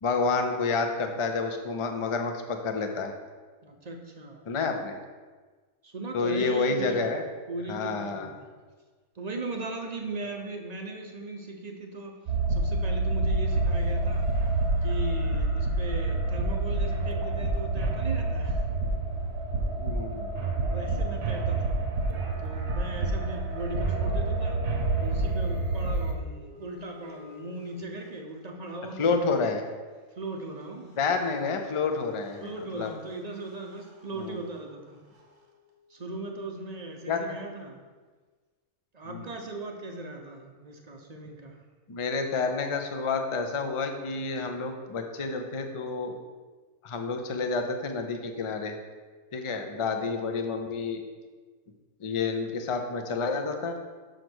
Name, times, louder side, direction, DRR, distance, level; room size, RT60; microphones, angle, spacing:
voice 1, 0.0-3.1 4.5-5.0 6.1-7.2 7.7-8.3 19.8-20.3 29.0-29.6 31.0-32.5 32.7-32.9 34.2-34.4 37.1-37.2 39.1-39.2 41.9-46.2 46.8-48.7 49.3-51.0 52.0-53.8, left 4 dB, 40° left, 5 dB, 0.4 m, -29 dB
voice 2, 3.6-4.5 5.8-7.1 7.5-8.5 9.1-14.3 14.8-18.7 20.7-21.8 22.4-24.6 25.0-29.4 30.1-31.0 32.4-35.0 35.9-37.8 38.9-41.6, right 2 dB, 35° right, 2 dB, 0.7 m, -38 dB
sound 1, 12.3-26.1, right 2 dB, 55° right, 1.2 m, -28 dB
sound 2, 23.4-28.7 30.6-30.7 30.9-36.4, left 2 dB, 85° right, 1.7 m, -51 dB
6.3 x 5.1 x 6.1 m, 1.4 s
omnidirectional pair, 1.6 m